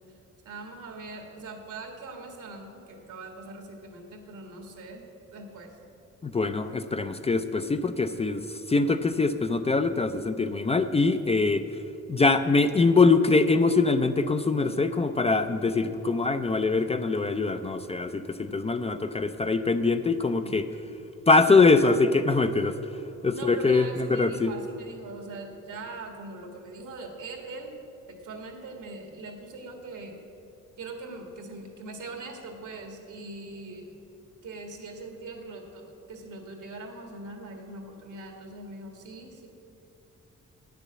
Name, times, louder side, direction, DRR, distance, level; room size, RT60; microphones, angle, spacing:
voice 1, 0.4-5.0 5.3-5.8 20.4-20.5 23.3-27.8 28.1-30.2 30.8-33.9 34.4-39.5, right 3 dB, 80° right, 3 dB, 1.7 m, -41 dB
voice 2, 6.2-11.7 12.1-20.7 21.3-22.8 23.2-24.5, left 3 dB, 20° left, 9 dB, 0.4 m, -23 dB
9.2 x 6.9 x 7.3 m, 2.8 s
cardioid pair, 85°, 30 cm